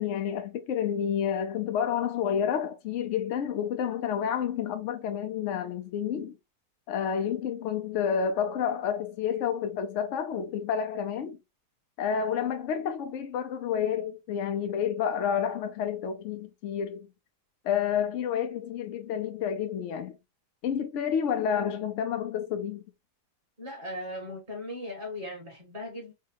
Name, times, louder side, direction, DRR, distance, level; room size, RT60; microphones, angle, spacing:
voice 1, 0.0-6.4 6.9-11.4 12.0-17.1 17.6-20.2 20.6-22.8, left 8 dB, 70° left, 0.7 m, -29 dB
voice 2, 23.6-26.1, left 1 dB, 30° right, 1.6 m, -38 dB
4.7 x 2.2 x 2.8 m
omnidirectional pair, 1.8 m